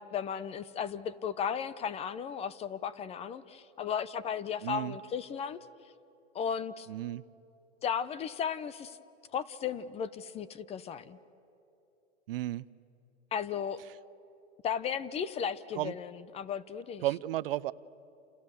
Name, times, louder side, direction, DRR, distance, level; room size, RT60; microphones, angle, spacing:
voice 1, 0.0-5.6 6.3-6.9 7.8-9.0 9.3-11.2 13.3-13.8 14.6-17.0, left 7 dB, 20° left, 17 dB, 0.7 m, -35 dB
voice 2, 4.6-5.0 6.9-7.2 12.3-12.6 15.8-15.9 17.0-17.7, right 15 dB, 60° right, 18 dB, 0.8 m, -33 dB
29.5 x 28.5 x 7.1 m, 2.9 s
hypercardioid pair, 135°, 33 cm